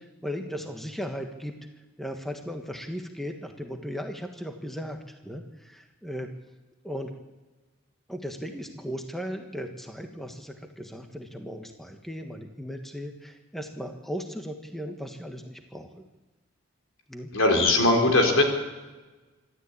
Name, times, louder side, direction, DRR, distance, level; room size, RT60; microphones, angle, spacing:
voice 1, 0.0-1.6 2.0-6.3 6.8-7.1 8.1-15.9 17.1-17.3, equal, ahead, 4 dB, 1.5 m, -37 dB
voice 2, 17.3-18.4, left 2 dB, 75° left, 3 dB, 4.2 m, -20 dB
26.0 x 12.5 x 8.6 m, 1.2 s
head